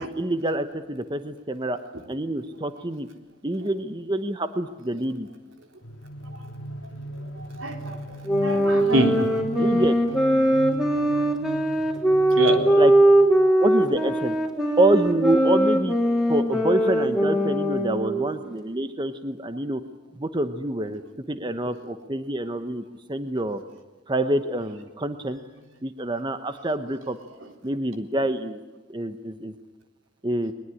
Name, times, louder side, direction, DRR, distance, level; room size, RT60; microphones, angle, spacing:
voice 1, 0.0-1.8 2.1-3.1 3.4-5.3 9.6-9.9 12.8-12.9 13.6-14.4 14.8-15.9 16.3-19.8 20.2-21.0 21.3-22.8 23.1-23.6 24.1-25.4 25.8-27.2 27.6-28.6 28.9-29.5 30.2-30.5, right 1 dB, 25° right, 9 dB, 1.0 m, -26 dB
sound 1, 5.8-13.7, right 1 dB, 75° left, 1.8 m, -39 dB
voice 2, 7.6-8.0 8.4-9.8 11.1-11.2 12.4-12.6, right 1 dB, 75° right, 4 dB, 3.7 m, -26 dB
sound 2, 8.3-18.2, right 1 dB, 5° right, 3.6 m, -21 dB
22.0 x 20.5 x 9.9 m, 1.1 s
head